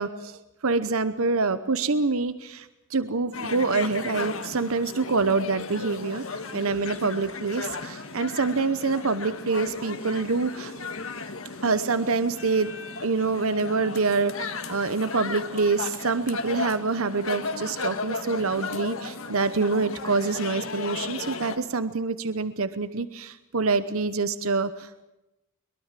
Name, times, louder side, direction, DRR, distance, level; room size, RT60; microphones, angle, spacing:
voice 1, 0.0-6.2 6.5-10.7 11.6-12.7 13.0-25.0, right 4 dB, 70° right, 13 dB, 1.0 m, -26 dB
sound 1, 3.3-21.6, left 4 dB, 70° left, 1.8 m, -35 dB
23.0 x 22.5 x 7.5 m, 0.94 s
head